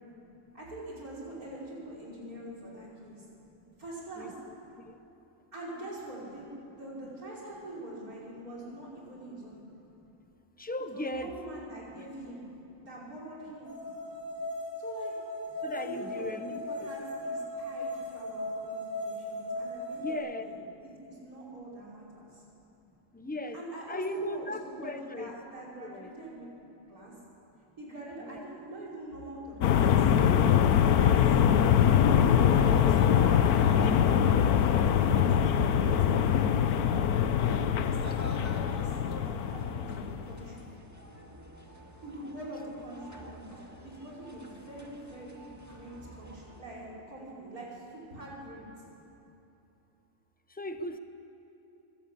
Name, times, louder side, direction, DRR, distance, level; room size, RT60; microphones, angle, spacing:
voice 1, 0.5-3.3 3.8-4.3 5.5-6.5 6.8-9.6 10.9-12.4 12.8-13.7 14.8-15.2 15.8-20.6 20.8-22.4 23.5-26.5 26.9-27.1 27.8-31.2 31.8-32.3 32.8-35.3 35.7-37.5 37.8-38.0 38.5-38.9 39.3-40.7 42.0-48.6, right 1 dB, 80° right, -4 dB, 5.8 m, -44 dB
voice 2, 10.6-11.4 11.9-12.0 15.6-16.9 20.0-20.5 23.1-23.6 23.9-25.3 25.8-26.1 28.2-28.4 32.4-32.7 50.5-51.0, left 1 dB, 10° left, 8 dB, 0.8 m, -37 dB
sound 1, 13.6-20.1, left 1 dB, 40° right, 6.6 m, -37 dB
sound 2, 29.6-40.5, left 8 dB, 85° left, 1.3 m, -23 dB
sound 3, 32.4-46.6, equal, 10° right, 2.0 m, -48 dB
23.5 x 16.5 x 8.6 m, 2.9 s
omnidirectional pair, 1.5 m